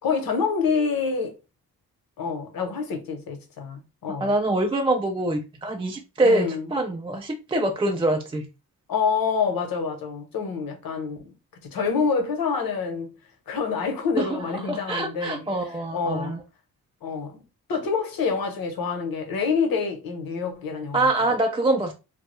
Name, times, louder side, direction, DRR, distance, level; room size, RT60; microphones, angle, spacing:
voice 1, 0.0-1.4 2.2-4.3 6.2-6.7 8.9-11.3 11.6-13.1 13.5-15.5 15.9-16.4 17.0-17.4 17.7-21.0 21.3-21.4, left 5 dB, 70° left, 0.8 m, -27 dB
voice 2, 4.2-8.5 14.2-16.4 20.9-21.9, right 2 dB, 15° right, 0.4 m, -24 dB
2.2 x 2.0 x 2.9 m
cardioid pair, 60°, 36 cm